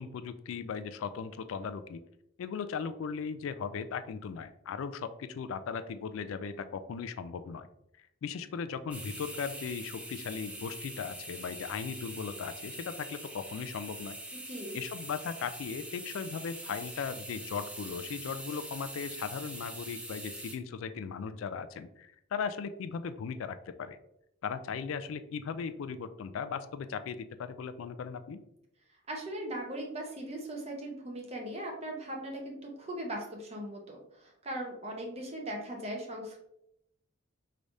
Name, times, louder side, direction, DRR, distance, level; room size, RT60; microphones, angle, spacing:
voice 1, 0.0-2.0 2.4-7.7 8.2-14.2 14.7-24.0 24.4-28.4, left 6 dB, 75° left, 11 dB, 0.3 m, -37 dB
sound 1, 8.9-20.6, right 1 dB, 5° right, 0.4 m, -44 dB
voice 2, 14.5-14.8 29.1-36.4, right 1 dB, 30° right, 1 dB, 0.9 m, -39 dB
4.9 x 3.2 x 2.6 m, 0.80 s
head